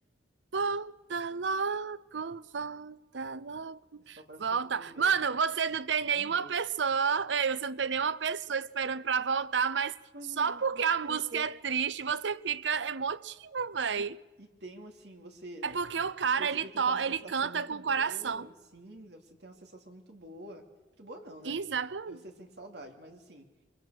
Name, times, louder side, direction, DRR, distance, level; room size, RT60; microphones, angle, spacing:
voice 1, 0.5-10.0 10.4-14.2 15.6-18.5 21.4-22.2, right 6 dB, 80° right, 0.7 m, -31 dB
voice 2, 4.2-5.2 6.0-6.6 10.1-11.5 14.0-14.1 14.4-16.1 16.4-20.6 21.0-21.6 22.1-23.5, right 1 dB, 65° right, 2.9 m, -48 dB
24.5 x 23.0 x 6.6 m
head